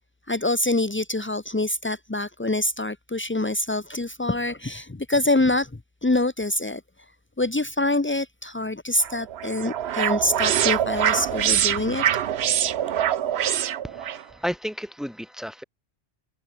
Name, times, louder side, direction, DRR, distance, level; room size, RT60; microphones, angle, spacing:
voice 1, 0.3-5.7 6.0-6.8 7.4-12.0, left 2 dB, 15° left, 0.5 m, -25 dB
sound 1, 9.0-14.2, right 10 dB, 65° right, 0.9 m, -24 dB
voice 2, 13.8-15.6, equal, ahead, 7.2 m, -32 dB
omnidirectional pair, 1.3 m